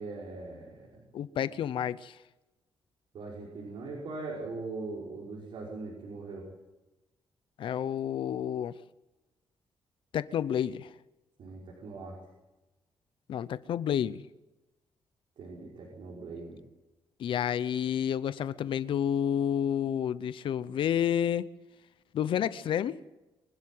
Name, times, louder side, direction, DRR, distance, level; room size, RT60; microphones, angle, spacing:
voice 1, 0.0-1.0 3.1-6.5 11.4-12.2 15.4-16.6, right 3 dB, 70° right, 5.6 m, -40 dB
voice 2, 1.1-2.2 7.6-8.7 10.1-10.9 13.3-14.2 17.2-21.5 22.1-23.0, left 9 dB, 75° left, 0.8 m, -30 dB
24.5 x 12.5 x 9.4 m
cardioid pair, 115°, 9 cm